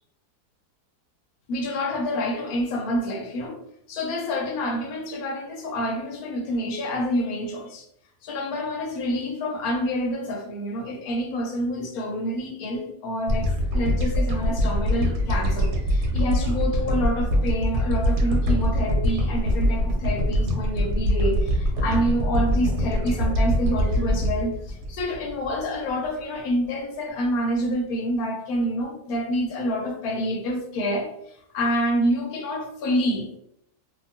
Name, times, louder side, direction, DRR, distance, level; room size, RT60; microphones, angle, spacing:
voice 1, 1.5-3.6 3.9-7.9 8.2-33.3, equal, 75° left, 1.1 m, -27 dB
sound 1, 13.3-25.8, equal, 85° right, 1.2 m, -23 dB
2.8 x 2.3 x 2.6 m
omnidirectional pair, 1.7 m